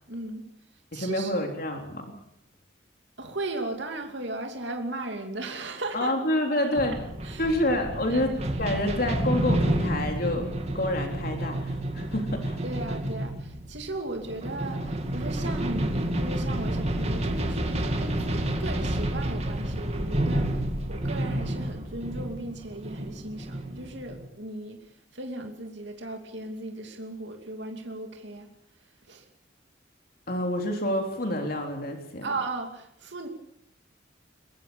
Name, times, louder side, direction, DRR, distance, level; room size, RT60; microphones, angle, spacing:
voice 1, 0.1-0.4 0.9-1.5 3.2-6.1 7.2-7.5 8.1-8.3 12.6-28.5 29.0-29.3 32.2-33.3, right 2 dB, 65° right, 3 dB, 2.8 m, -36 dB
voice 2, 0.9-2.0 5.9-6.9 7.4-12.6 30.3-32.3, left 1 dB, 50° left, 3 dB, 3.6 m, -28 dB
sound 1, 6.8-24.3, right 1 dB, 35° right, 2.6 m, -30 dB
22.5 x 21.5 x 7.0 m, 0.76 s
head